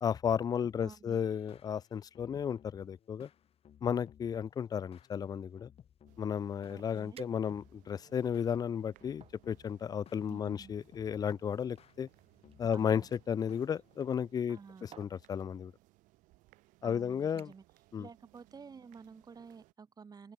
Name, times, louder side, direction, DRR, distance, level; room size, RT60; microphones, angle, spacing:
voice 1, 0.0-3.3 3.8-5.7 6.2-12.1 12.6-15.7 16.8-17.5 17.9-18.1, left 8 dB, 30° left, 0.4 m, -34 dB
sound 1, 0.6-14.4, left 9 dB, 50° left, 7.5 m, -61 dB
voice 2, 0.8-1.2 6.7-7.2 10.3-10.7 12.7-13.1 14.5-14.9 16.8-17.6 18.0-20.3, right 5 dB, 30° right, 2.5 m, -51 dB
sound 2, 6.1-19.7, right 20 dB, 80° right, 5.3 m, -65 dB
sound 3, 7.1-7.9 8.5-9.4 10.4-13.2 14.3-14.6 14.9-15.2 16.1-16.3 16.7-17.0 17.4-17.8 18.1-18.5 18.8-18.9, right 9 dB, 45° right, 2.3 m, -58 dB
open air
cardioid pair, 105°, 13 cm